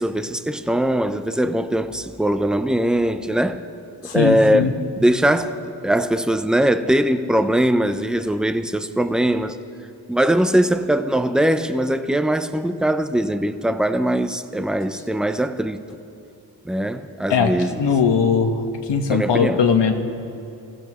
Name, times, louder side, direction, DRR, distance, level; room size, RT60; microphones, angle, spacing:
voice 1, 0.0-3.6 4.1-9.6 10.1-15.8 16.6-17.7 19.1-19.6, right 1 dB, ahead, 0.6 m, -21 dB
voice 2, 4.1-4.7 17.3-17.5 17.8-18.6 18.9-19.9, left 6 dB, 80° left, 1.4 m, -19 dB
24.0 x 15.5 x 3.1 m
cardioid pair, 70°, 42 cm